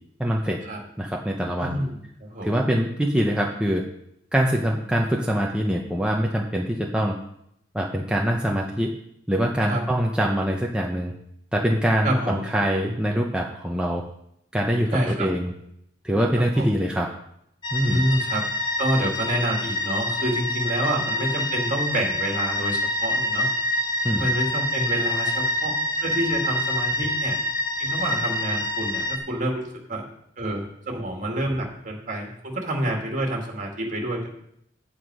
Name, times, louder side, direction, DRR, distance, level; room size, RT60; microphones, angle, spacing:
voice 1, 0.2-0.6 1.0-1.8 2.4-3.9 4.3-7.1 7.7-8.9 9.3-11.1 11.5-14.0 14.5-15.5 16.0-17.1 17.7-18.0 24.0-24.3, equal, 5° right, -1 dB, 0.8 m, -24 dB
voice 2, 1.6-2.6 9.6-9.8 12.0-12.4 14.9-15.3 16.6-16.8 17.8-18.4 18.8-23.5 24.1-25.7 26.0-27.4 27.8-30.0 30.4-34.3, right 1 dB, 45° right, 0 dB, 2.4 m, -27 dB
sound 1, 17.6-29.2, left 1 dB, 25° left, 1.1 m, -26 dB
9.1 x 8.6 x 4.9 m, 0.75 s
head